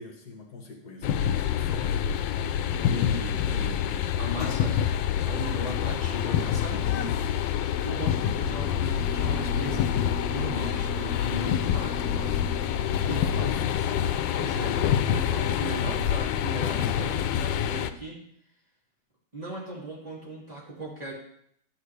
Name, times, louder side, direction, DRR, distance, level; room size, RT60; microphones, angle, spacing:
voice 1, 0.0-1.9 8.2-8.5 13.0-14.0, left 5 dB, 65° left, 3 dB, 1.6 m, -42 dB
sound 1, 1.0-17.9, left 9 dB, 90° left, 1.3 m, -27 dB
voice 2, 2.7-7.2 7.8-12.3 13.0-13.5 14.3-14.8 15.1-18.2 19.3-21.1, equal, 20° right, -6 dB, 2.8 m, -38 dB
Alarm, 9.0-16.1, right 3 dB, 75° right, 2.0 m, -43 dB
11.0 x 8.9 x 3.3 m, 0.69 s
omnidirectional pair, 1.9 m